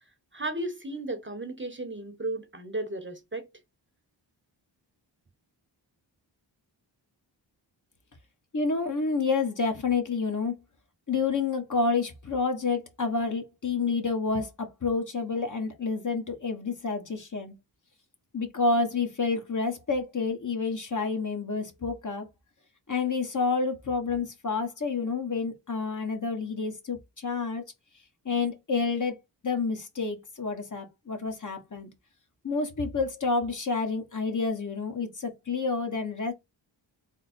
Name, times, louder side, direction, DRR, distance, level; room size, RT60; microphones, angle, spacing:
voice 1, 0.3-3.4, right 2 dB, 25° right, 0.9 m, -34 dB
voice 2, 8.5-10.5 11.1-17.5 18.3-22.3 22.9-27.6 28.2-29.2 29.4-31.9 32.4-36.3, left 4 dB, 40° left, 1.2 m, -29 dB
3.5 x 2.1 x 4.2 m
cardioid pair, 45°, 46 cm